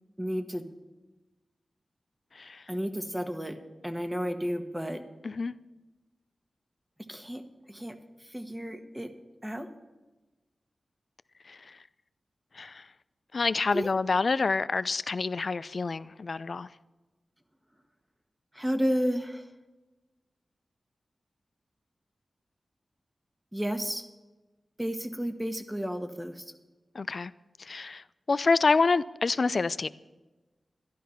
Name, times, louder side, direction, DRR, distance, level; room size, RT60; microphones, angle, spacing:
voice 1, 0.2-0.6 2.7-3.6 3.8-5.0 7.1-7.4 7.7-8.0 8.2-9.1 9.4-9.7 13.7-13.9 18.5-19.5 23.5-24.0 24.8-26.5, equal, 10° right, 1.3 m, -32 dB
voice 2, 13.3-16.7 26.9-27.3 27.6-29.9, left 4 dB, 60° left, 0.4 m, -27 dB
12.5 x 11.5 x 5.7 m
cardioid pair, 65°, 0 cm